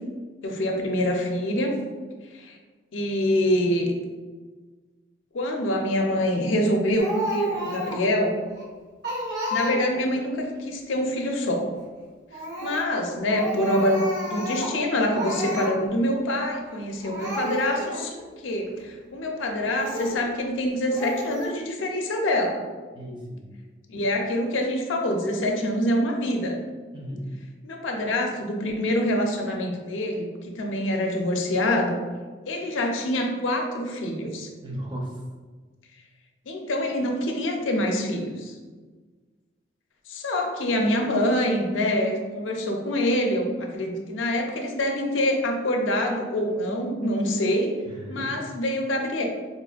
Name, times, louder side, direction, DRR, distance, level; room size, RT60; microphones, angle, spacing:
voice 1, 0.4-1.7 2.3-2.6 2.9-3.9 5.3-8.3 9.5-11.7 12.6-18.1 18.4-22.6 23.9-26.6 27.6-32.0 32.5-34.5 36.5-38.5 40.1-47.8 48.1-49.2, left 1 dB, 90° left, 2 dB, 0.5 m, -25 dB
Speech, 7.0-8.1 8.6-8.7 9.0-10.1 12.3-12.9 13.3-14.8 15.1-15.7 16.6-16.8 17.0-18.1 18.7-18.8 19.7-20.2 20.9-21.5, equal, 65° right, 0.8 m, -31 dB
voice 2, 22.9-23.5 26.9-27.3 34.6-35.2 47.8-48.4, equal, 25° right, -1 dB, 0.5 m, -35 dB
4.1 x 2.5 x 2.3 m, 1.4 s
head